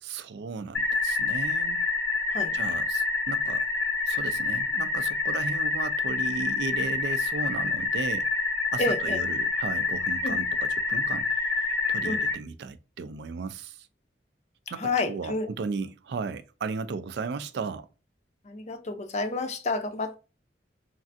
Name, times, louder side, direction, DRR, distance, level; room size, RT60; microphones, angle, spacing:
voice 1, 0.0-1.9 2.5-3.6 4.1-8.3 8.7-13.9 14.7-17.9, right 4 dB, 65° right, 0.3 m, -35 dB
sound 1, 0.7-12.3, left 3 dB, 85° left, 0.9 m, -27 dB
voice 2, 8.8-9.2 10.2-10.4 12.0-12.2 14.8-15.5 18.4-20.2, left 3 dB, 40° left, 0.5 m, -29 dB
3.2 x 2.5 x 2.5 m
head